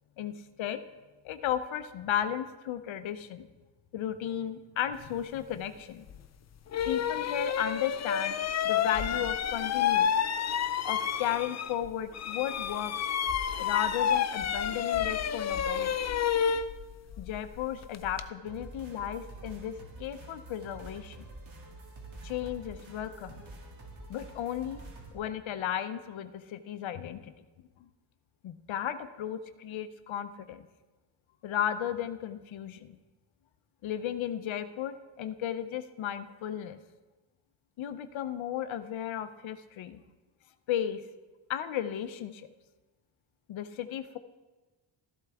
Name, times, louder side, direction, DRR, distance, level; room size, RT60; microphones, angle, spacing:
voice 1, 1.2-3.5 3.9-6.0 6.9-8.4 8.6-10.1 10.8-12.9 13.6-15.9 17.2-21.2 22.2-23.3 24.1-24.8 25.1-27.3 28.4-30.7 31.4-33.0 33.8-36.8 37.8-40.0 40.7-41.0 41.5-42.5 43.5-44.2, left 10 dB, 80° left, 10 dB, 0.7 m, -34 dB
sound 1, 6.1-6.2 6.7-11.9 12.1-18.3, left 8 dB, 40° left, 0.4 m, -30 dB
sound 2, 18.5-25.1, right 2 dB, 85° right, 2.6 m, -47 dB
13.5 x 11.5 x 3.5 m, 1.2 s
cardioid pair, 120°, 46 cm